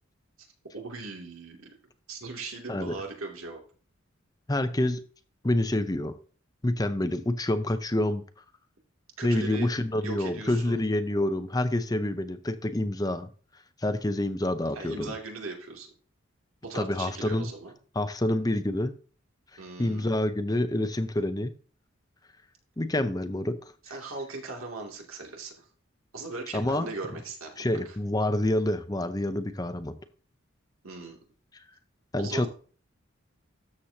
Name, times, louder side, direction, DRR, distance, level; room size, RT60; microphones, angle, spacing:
voice 1, 0.7-1.7 2.1-3.6 9.2-9.7 10.0-10.8 14.7-15.9 16.6-17.7 19.6-20.2 23.8-25.6 26.1-27.8 30.8-31.2 32.2-32.5, right 3 dB, 90° right, 2.6 m, -39 dB
voice 2, 4.5-5.0 5.4-6.2 6.6-8.2 9.2-13.3 13.8-15.1 16.7-17.5 17.9-18.9 19.8-21.5 22.8-23.6 26.5-26.9 27.6-29.9 32.1-32.5, left 1 dB, 20° left, 0.6 m, -27 dB
13.0 x 7.4 x 2.8 m
head